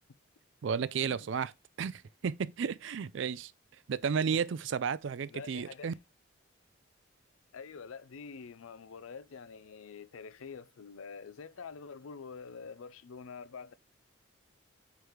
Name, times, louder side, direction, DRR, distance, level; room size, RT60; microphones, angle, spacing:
voice 1, 0.6-1.5 1.8-3.5 3.9-5.9, right 6 dB, 65° right, 0.4 m, -33 dB
voice 2, 5.3-6.0 7.5-13.7, left 5 dB, 85° left, 0.5 m, -46 dB
4.8 x 4.6 x 4.9 m
head